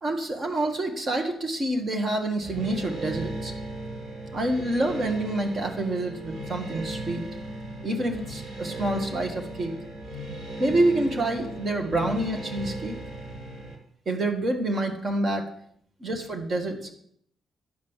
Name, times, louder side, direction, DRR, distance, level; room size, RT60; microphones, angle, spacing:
voice 1, 0.0-3.5 4.3-7.2 7.8-9.7 10.6-13.0 14.0-15.5 16.0-16.9, right 1 dB, 30° right, 3 dB, 1.4 m, -27 dB
sound 1, 2.4-13.8, right 1 dB, 75° right, 3.1 m, -37 dB
11.0 x 5.3 x 7.1 m, 0.67 s
wide cardioid pair, 175°, 0 cm